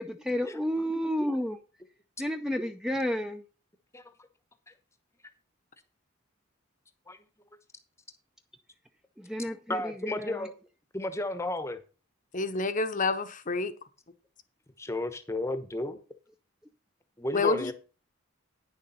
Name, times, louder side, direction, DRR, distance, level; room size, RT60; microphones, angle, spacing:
voice 1, 0.0-1.6 2.2-3.4 9.2-10.5, equal, 5° right, 0.6 m, -31 dB
voice 2, 9.7-10.5 10.9-11.8 14.8-16.0 17.2-17.7, left 1 dB, 15° left, 0.9 m, -33 dB
voice 3, 12.3-13.7 17.3-17.7, left 3 dB, 40° left, 0.8 m, -28 dB
9.6 x 6.7 x 5.6 m
head